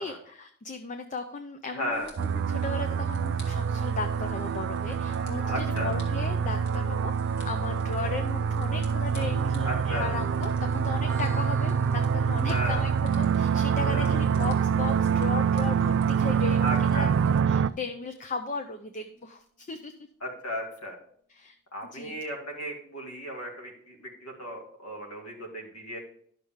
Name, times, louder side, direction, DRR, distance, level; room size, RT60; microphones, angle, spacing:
voice 1, 0.0-2.1 2.5-19.9 21.3-21.5 21.9-22.2, left 4 dB, 35° left, 6 dB, 0.5 m, -36 dB
voice 2, 1.7-2.1 5.2-5.9 9.6-10.1 12.5-12.8 13.9-14.1 16.6-17.2 20.2-21.0 21.7-26.0, equal, 85° left, 1 dB, 2.2 m, -35 dB
sound 1, 1.9-17.4, left 1 dB, 60° left, 2.0 m, -52 dB
sound 2, 2.2-17.7, right 7 dB, 55° right, 0.3 m, -26 dB
sound 3, 11.1-18.5, right 6 dB, 10° left, 1.6 m, -49 dB
11.0 x 6.6 x 3.6 m, 0.64 s
head